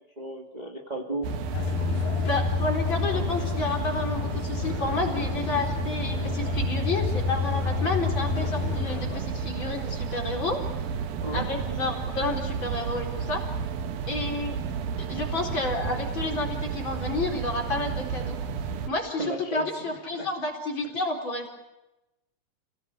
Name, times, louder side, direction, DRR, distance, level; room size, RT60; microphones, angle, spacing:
voice 1, 0.2-1.3 11.2-11.5 19.2-19.7 20.1-20.3, right 2 dB, 15° right, 1 dB, 1.7 m, -33 dB
sound 1, 1.2-18.9, right 5 dB, 80° right, 3.2 m, -32 dB
sound 2, 1.5-9.2, left 7 dB, 75° left, 3.5 m, -30 dB
voice 2, 2.3-10.6 11.3-13.5 14.1-14.6 15.1-18.4 18.9-21.5, left 3 dB, 35° left, 1 dB, 4.6 m, -30 dB
29.5 x 17.5 x 8.7 m, 0.95 s
omnidirectional pair, 4.1 m